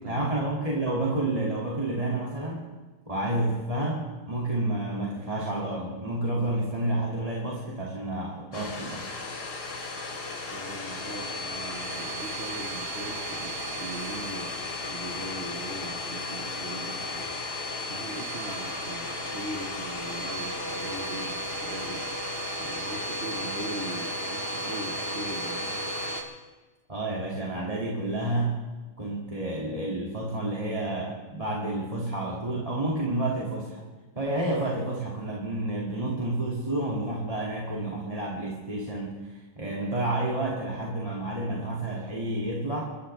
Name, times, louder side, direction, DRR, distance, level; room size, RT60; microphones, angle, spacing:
voice 1, 0.1-2.7 3.1-9.1 26.9-28.6 29.0-33.8 34.2-42.8, right 1 dB, 20° right, -4 dB, 2.3 m, -30 dB
Domestic sounds home sounds, 8.5-26.2, left 1 dB, 80° left, 2.5 m, -34 dB
voice 2, 10.5-14.5 14.9-22.2 22.6-25.8, right 1 dB, 40° right, -2 dB, 1.8 m, -40 dB
28.5 x 14.0 x 3.3 m, 1.2 s
omnidirectional pair, 1.7 m